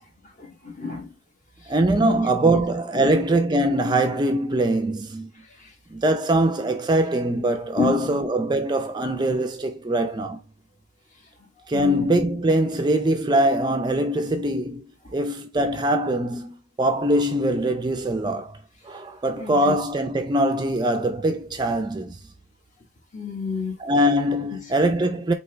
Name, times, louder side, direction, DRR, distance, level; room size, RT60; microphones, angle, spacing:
voice 1, 0.4-1.1 2.0-2.2 2.5-2.6 2.9-3.2 7.8-8.2 11.7-12.1 19.3-19.7 23.1-23.7, left 4 dB, 40° left, 1.2 m, -29 dB
voice 2, 1.7-5.3 5.9-10.4 11.7-14.8 15.1-18.6 18.8-22.2 23.8-25.3, right 1 dB, 25° right, 0.4 m, -22 dB
4.4 x 2.9 x 3.2 m
head